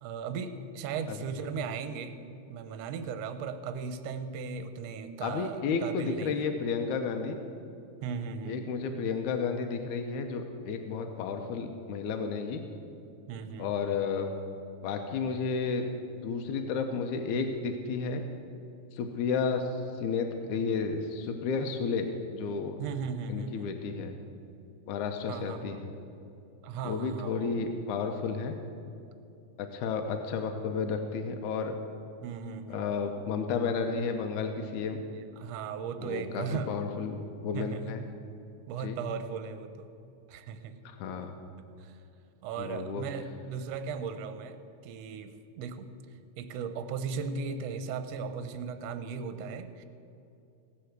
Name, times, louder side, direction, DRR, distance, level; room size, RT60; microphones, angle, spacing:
voice 1, 0.0-2.1 2.5-6.5 8.0-8.6 13.3-13.7 22.8-23.7 25.3-25.8 26.6-27.7 32.2-32.9 35.4-36.8 37.5-37.9 38.7-39.9 40.3-40.7 41.8-42.0 42.4-44.6 44.8-45.9 46.4-49.8, right 5 dB, 70° right, 9 dB, 1.7 m, -37 dB
voice 2, 5.2-7.4 8.4-12.6 13.6-14.3 14.8-15.9 16.2-18.2 18.9-22.8 23.3-24.2 24.9-25.9 26.8-28.6 29.6-31.8 32.7-35.0 36.0-38.0 38.8-39.0 40.9-41.4 42.6-43.0, left 5 dB, 80° left, 5 dB, 2.2 m, -32 dB
17.0 x 6.9 x 8.0 m, 2.7 s
omnidirectional pair, 3.5 m